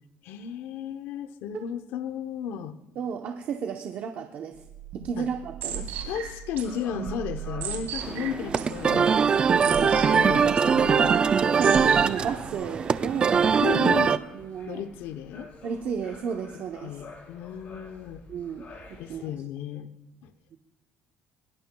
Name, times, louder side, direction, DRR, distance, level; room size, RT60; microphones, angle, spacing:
voice 1, 0.2-2.8 5.2-5.3 5.8-9.1 9.6-11.2 13.6-14.2 14.7-15.5 16.8-18.2 19.0-19.9 20.2-20.3, left 8 dB, 80° left, 10 dB, 0.8 m, -34 dB
voice 2, 3.0-4.6 4.9-5.9 9.6-9.8 11.5-13.5 14.3-14.8 15.6-17.0 18.3-19.3 20.5-20.6, right 7 dB, 45° right, 3 dB, 0.8 m, -33 dB
sound 1, 4.6-12.5, right 7 dB, 70° right, 2.7 m, -37 dB
sound 2, 6.6-19.3, left 3 dB, 45° left, 3.8 m, -47 dB
sound 3, 8.0-14.2, right 6 dB, 25° right, 0.4 m, -22 dB
21.0 x 17.5 x 2.3 m, 0.98 s
cardioid pair, 160°, 4 cm